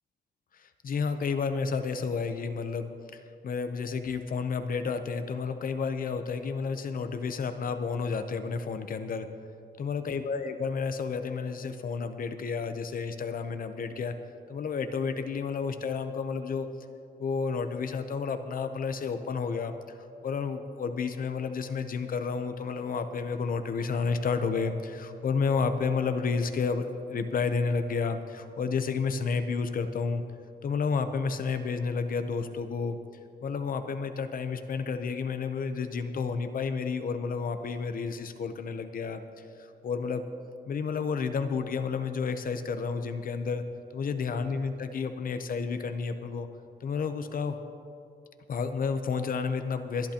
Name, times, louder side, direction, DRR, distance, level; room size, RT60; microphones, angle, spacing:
voice 1, 0.5-9.3 9.8-14.2 14.5-16.7 17.2-20.0 20.2-30.2 30.6-33.0 33.4-39.2 39.6-40.2 40.7-43.7 43.9-46.5 46.8-47.6 48.5-50.1, left 5 dB, 55° left, 9 dB, 0.7 m, -31 dB
23.5 x 11.0 x 2.9 m, 2.5 s
wide cardioid pair, 155°, 17 cm